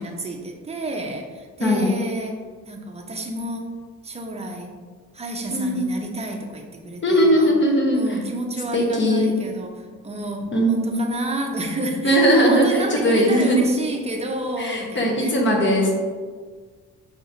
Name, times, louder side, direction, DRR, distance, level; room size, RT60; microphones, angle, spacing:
voice 1, 0.0-4.8 5.1-7.5 7.9-15.4, right 1 dB, 20° right, 2 dB, 0.6 m, -30 dB
voice 2, 1.6-1.9 5.5-5.8 7.0-8.2 8.7-9.3 10.5-10.9 12.0-13.6 14.6-15.9, equal, 40° left, -1 dB, 1.0 m, -19 dB
4.7 x 2.8 x 2.7 m, 1.5 s
cardioid pair, 90°, 30 cm